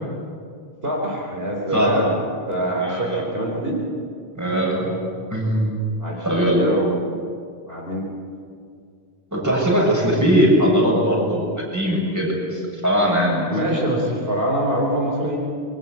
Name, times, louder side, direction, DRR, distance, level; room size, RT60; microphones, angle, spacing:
voice 1, 0.8-3.8 6.0-7.2 7.7-8.4 13.5-15.4, right 1 dB, 70° right, -1 dB, 4.0 m, -25 dB
voice 2, 2.7-3.2 4.3-4.9 5.3-5.7 6.2-6.6 9.3-13.8, equal, 15° right, -3 dB, 8.0 m, -20 dB
26.0 x 23.0 x 8.3 m, 2.3 s
omnidirectional pair, 1.1 m